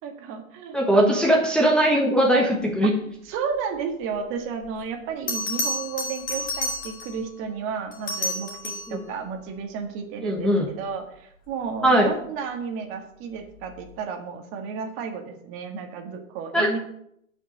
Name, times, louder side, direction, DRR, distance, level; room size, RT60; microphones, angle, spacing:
voice 1, 0.0-1.4 2.0-2.1 3.2-16.8, right 6 dB, 30° right, 4 dB, 1.7 m, -33 dB
voice 2, 0.7-2.9 8.9-9.0 10.2-10.7 11.8-12.1 16.5-16.7, right 1 dB, ahead, -3 dB, 1.3 m, -20 dB
Bell, 4.6-4.7 5.3-7.2 7.9-9.0 11.7-11.9, left 2 dB, 20° left, 2.7 m, -30 dB
8.1 x 6.0 x 7.9 m, 0.72 s
hypercardioid pair, 130°, 41 cm